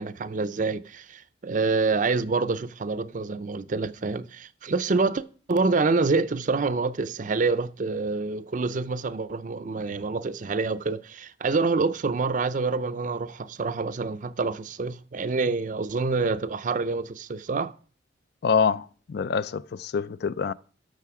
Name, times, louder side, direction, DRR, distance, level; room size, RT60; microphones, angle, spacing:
voice 1, 0.0-5.2 5.5-17.7, right 4 dB, 45° right, 0.5 m, -27 dB
voice 2, 18.4-20.5, left 6 dB, 55° left, 0.4 m, -26 dB
13.0 x 6.6 x 4.8 m
head